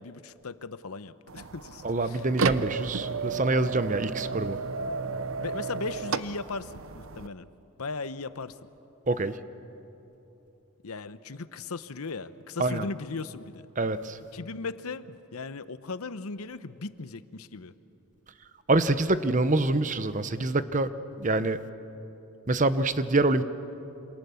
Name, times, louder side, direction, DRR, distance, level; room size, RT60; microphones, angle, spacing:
voice 1, 0.0-2.2 5.4-7.5 7.8-8.5 10.8-13.6 14.3-17.7, left 3 dB, 85° left, 13 dB, 0.9 m, -37 dB
sound 1, 1.3-7.3, right 4 dB, 65° right, 0.7 m, -33 dB
voice 2, 1.8-4.6 9.1-9.4 12.6-12.8 13.8-14.2 18.7-20.9 21.2-21.6 22.5-23.4, right 2 dB, 35° right, 12 dB, 0.8 m, -25 dB
27.5 x 27.0 x 7.0 m, 3.0 s
head